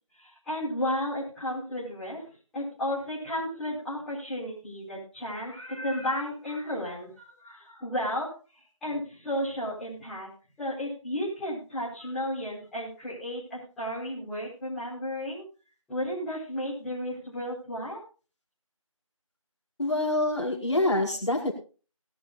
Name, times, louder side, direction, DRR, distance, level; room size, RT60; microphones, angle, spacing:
voice 1, 0.2-2.3 2.5-8.3 8.8-10.3 10.6-15.4 15.9-18.0, left 1 dB, ahead, -17 dB, 5.4 m, -33 dB
voice 2, 19.8-21.5, left 1 dB, 55° left, -1 dB, 5.6 m, -26 dB
20.5 x 13.5 x 2.7 m, 0.35 s
figure-of-eight pair, 170°, 18 cm